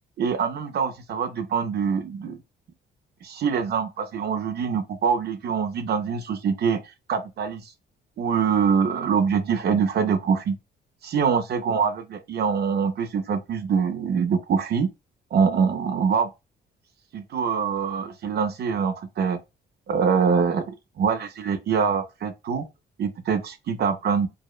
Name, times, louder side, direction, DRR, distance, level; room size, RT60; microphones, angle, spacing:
voice 1, 0.2-2.4 3.2-6.8 7.1-7.7 8.2-10.6 11.0-14.9 15.3-16.3 17.1-19.4 19.9-22.7 23.0-24.3, right 6 dB, 55° right, 0.5 m, -24 dB
2.6 x 2.0 x 2.3 m
cardioid pair, 90°, 20 cm